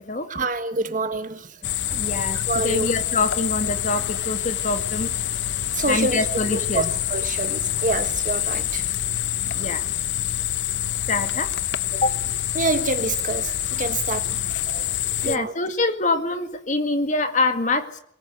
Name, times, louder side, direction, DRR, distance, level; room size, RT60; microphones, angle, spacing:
voice 1, 0.3-2.0 2.3-2.9 5.7-6.3 6.5-8.9 12.5-14.3 14.6-14.9 15.2-15.5, right 3 dB, 45° right, 9 dB, 1.7 m, -27 dB
sound 1, 1.6-15.4, left 11 dB, 75° left, 0.8 m, -26 dB
voice 2, 2.0-2.4 2.6-5.1 5.9-6.9 9.5-9.8 11.1-11.5 11.9-12.1 15.2-18.0, left 2 dB, 40° left, 8 dB, 2.0 m, -25 dB
21.5 x 20.5 x 8.2 m, 0.70 s
head